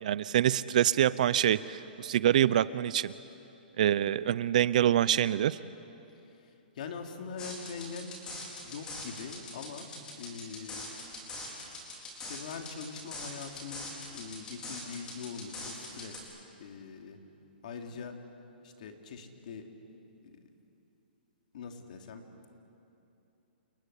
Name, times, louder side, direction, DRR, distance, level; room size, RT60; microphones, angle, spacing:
voice 1, 0.0-3.1 3.8-5.6, right 11 dB, 45° right, 18 dB, 0.6 m, -26 dB
voice 2, 6.3-8.3 8.6-9.9 10.2-10.9 12.1-16.3 16.6-17.2 17.6-18.2 18.6-19.7 20.2-20.5 21.5-22.2, left 5 dB, 50° left, 4 dB, 2.7 m, -43 dB
sound 1, 7.4-16.2, left 2 dB, 15° left, 4.2 m, -43 dB
28.5 x 19.5 x 9.9 m, 2.8 s
hypercardioid pair, 165°, 6 cm